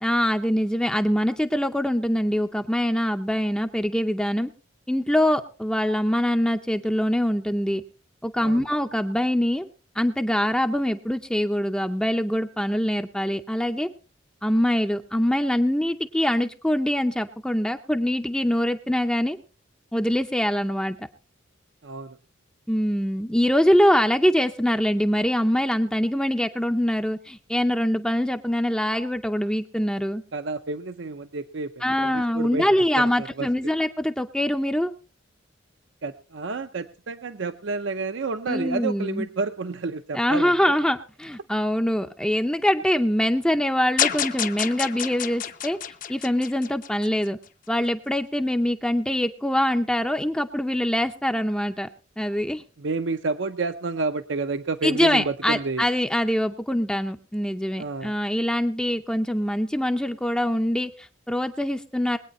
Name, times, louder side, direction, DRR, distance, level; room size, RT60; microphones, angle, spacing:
voice 1, 0.0-4.5 4.9-7.8 8.2-9.7 10.0-13.9 14.4-19.4 19.9-21.1 22.7-30.2 31.8-34.9 38.5-39.3 40.1-45.8 46.1-47.4 47.7-51.9 52.2-52.6 54.8-62.2, equal, 5° left, 6 dB, 0.5 m, -24 dB
voice 2, 21.8-22.2 30.3-32.6 33.0-33.5 36.0-40.8 52.8-55.9 57.8-58.1, right 3 dB, 65° right, 10 dB, 0.6 m, -30 dB
sound 1, 44.0-47.3, left 9 dB, 40° left, 0.7 m, -28 dB
21.0 x 9.0 x 4.2 m, 0.37 s
head